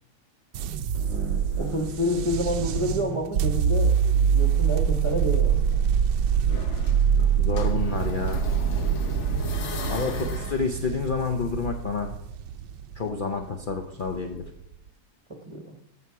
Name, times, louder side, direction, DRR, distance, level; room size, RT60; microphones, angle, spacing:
sound 1, 0.5-14.7, right 8 dB, 80° right, 1.2 m, -25 dB
sound 2, 0.9-4.0, right 1 dB, 90° left, 3.0 m, -41 dB
sound 3, 1.1-3.3 3.6-10.6, left 3 dB, 50° left, 1.1 m, -36 dB
voice 1, 1.6-3.9 4.3-5.8 10.0-10.4 15.5-15.8, equal, 25° right, 4 dB, 0.8 m, -29 dB
voice 2, 7.4-8.4 9.9-12.1 13.0-14.5, left 5 dB, 65° left, 3 dB, 0.5 m, -29 dB
14.5 x 5.8 x 4.7 m, 0.82 s
omnidirectional pair, 1.9 m